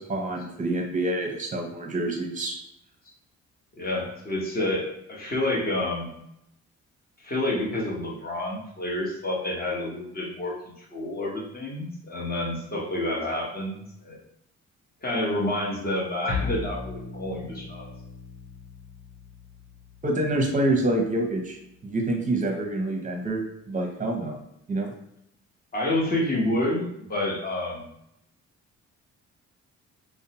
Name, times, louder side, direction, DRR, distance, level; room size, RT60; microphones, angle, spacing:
voice 1, 0.0-2.6 20.0-21.6 21.8-24.4 24.7-24.9, right 1 dB, 25° right, 2 dB, 0.7 m, -27 dB
voice 2, 3.8-6.2 7.2-14.2 15.0-17.9 25.7-27.9, left 1 dB, 30° left, -2 dB, 0.9 m, -29 dB
Bowed string instrument, 16.3-22.7, left 3 dB, 90° left, 0.7 m, -38 dB
2.6 x 2.0 x 2.8 m, 0.78 s
cardioid pair, 90°, 30 cm